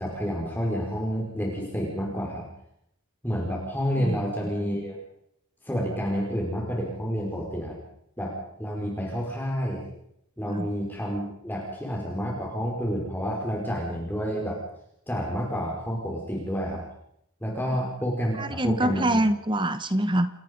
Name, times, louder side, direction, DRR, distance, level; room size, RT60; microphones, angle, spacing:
voice 1, 0.0-2.5 3.2-5.0 5.6-7.8 8.2-9.9 10.4-14.6 15.1-16.8 17.4-19.2, equal, 10° left, -2 dB, 5.0 m, -29 dB
voice 2, 18.4-20.3, right 1 dB, 20° right, 12 dB, 1.1 m, -25 dB
29.0 x 18.5 x 5.4 m, 0.76 s
head